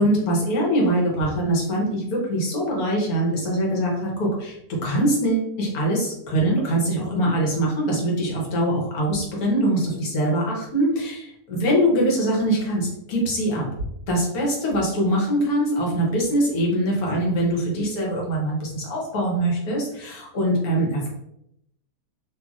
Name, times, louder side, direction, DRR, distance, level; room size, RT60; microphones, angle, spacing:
voice 1, 0.0-11.2 11.5-13.7 14.1-21.1, right 1 dB, 75° left, -2 dB, 1.3 m, -23 dB
3.0 x 2.5 x 2.4 m, 0.79 s
omnidirectional pair, 1.6 m